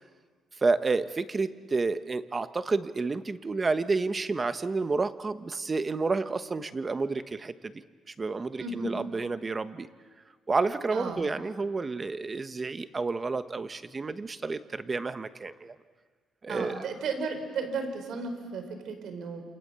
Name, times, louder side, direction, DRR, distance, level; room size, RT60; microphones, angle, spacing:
voice 1, 0.6-7.8 8.1-9.9 10.5-15.8 16.4-16.9, right 3 dB, 30° right, 11 dB, 1.3 m, -30 dB
voice 2, 8.6-9.0 10.9-11.2 16.5-19.4, right 4 dB, 70° right, 7 dB, 5.0 m, -34 dB
28.5 x 28.5 x 7.0 m, 1.5 s
cardioid pair, 95°, 0 cm